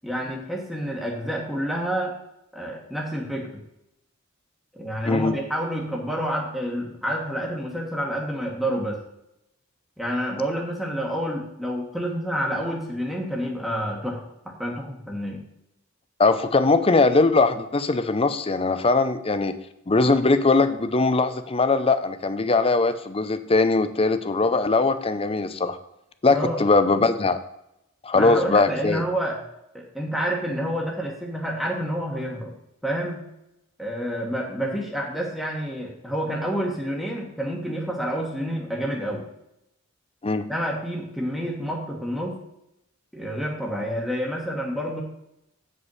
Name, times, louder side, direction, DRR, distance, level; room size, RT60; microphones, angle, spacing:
voice 1, 0.0-2.2 2.5-3.6 4.7-9.0 10.0-15.4 26.3-26.6 28.1-29.4 29.7-32.5 32.8-33.3 33.8-39.2 40.5-42.4 43.1-45.0, equal, ahead, -2 dB, 1.4 m, -28 dB
voice 2, 5.1-5.4 16.2-19.5 19.9-25.8 26.2-27.4 28.0-29.0 40.2-40.4, left 3 dB, 30° left, 11 dB, 0.6 m, -21 dB
8.3 x 5.4 x 5.5 m, 0.83 s
head